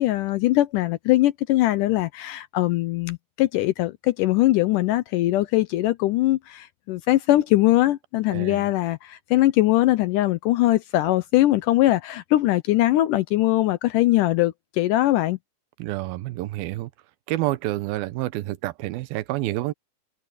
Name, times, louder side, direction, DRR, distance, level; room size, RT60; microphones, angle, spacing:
voice 1, 0.0-15.4, left 16 dB, 80° left, 1.9 m, -21 dB
voice 2, 8.3-8.6 15.8-16.9 17.3-19.7, right 16 dB, 80° right, 2.6 m, -28 dB
omnidirectional pair, 4.2 m